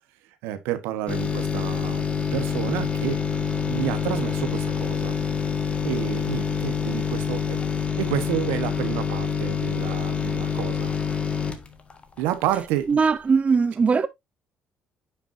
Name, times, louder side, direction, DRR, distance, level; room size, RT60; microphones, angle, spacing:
voice 1, 0.4-2.0 2.3-3.2 3.7-5.2 5.8-7.6 8.0-10.9 12.2-13.0, right 12 dB, 85° right, 1.2 m, -29 dB
sound 1, 1.1-12.7 13.0-13.1, left 6 dB, 35° left, 1.7 m, -26 dB
voice 2, 12.9-14.1, right 5 dB, 35° right, 0.7 m, -20 dB
9.5 x 6.1 x 2.7 m
supercardioid pair, 65°, 4 cm